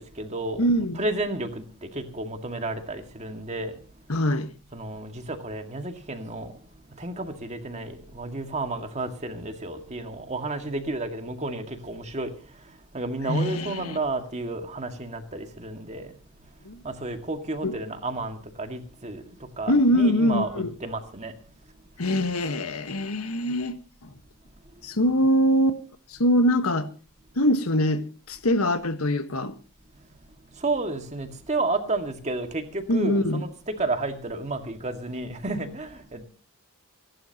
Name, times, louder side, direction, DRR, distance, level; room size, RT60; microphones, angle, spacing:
voice 1, 0.0-3.7 4.7-6.5 7.0-12.3 12.9-16.1 16.8-19.2 19.6-21.3 30.6-36.2, right 2 dB, 35° right, 2.0 m, -31 dB
voice 2, 0.6-1.0 4.1-4.5 13.3-14.0 16.6-16.8 17.6-17.7 19.7-20.7 22.0-24.1 24.8-25.8 26.1-26.9 27.4-29.5 32.9-33.4, equal, 90° left, 1.4 m, -23 dB
29.5 x 11.5 x 2.9 m
head